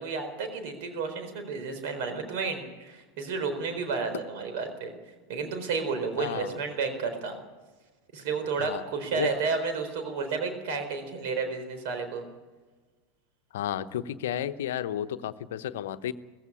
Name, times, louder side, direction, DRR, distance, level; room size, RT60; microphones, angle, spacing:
voice 1, 0.0-4.9 5.3-7.4 8.1-12.2, right 4 dB, 60° right, 7 dB, 4.2 m, -31 dB
voice 2, 6.2-6.6 8.6-8.8 9.1-9.3 13.5-16.1, left 11 dB, 65° left, 12 dB, 0.9 m, -32 dB
19.5 x 15.5 x 9.8 m, 1.3 s
figure-of-eight pair, 85°, 0 cm